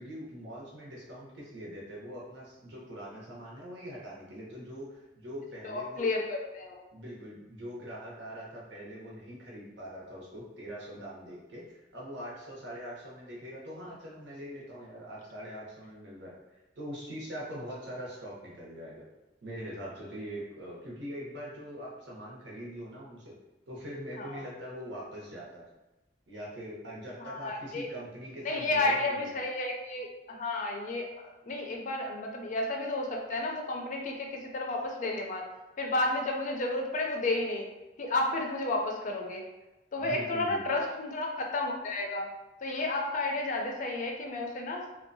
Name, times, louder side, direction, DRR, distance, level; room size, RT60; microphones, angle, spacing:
voice 1, 0.0-6.1 6.9-19.0 19.4-23.4 23.7-25.6 26.3-29.3 40.0-40.8, equal, 85° right, -5 dB, 0.8 m, -42 dB
voice 2, 5.6-6.8 24.2-24.4 27.2-27.9 28.4-35.5 35.8-37.7 38.0-39.4 39.9-42.3 42.6-44.9, left 2 dB, 45° left, 1 dB, 0.4 m, -32 dB
2.6 x 2.2 x 2.6 m, 1.0 s
head